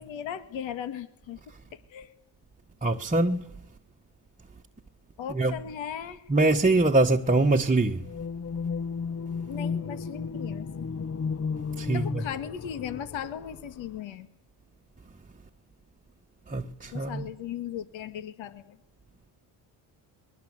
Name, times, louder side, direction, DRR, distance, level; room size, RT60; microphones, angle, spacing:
voice 1, 0.0-1.4 1.9-2.1 5.2-6.2 9.5-10.9 11.9-14.3 16.9-18.8, left 9 dB, 65° left, 2.0 m, -37 dB
voice 2, 2.8-3.5 5.3-5.6 6.3-8.0 11.8-12.2 16.5-17.3, right 2 dB, 15° right, 1.3 m, -23 dB
sound 1, 8.0-14.0, left 5 dB, 30° left, 1.0 m, -34 dB
29.5 x 22.0 x 8.2 m
supercardioid pair, 75°, 48 cm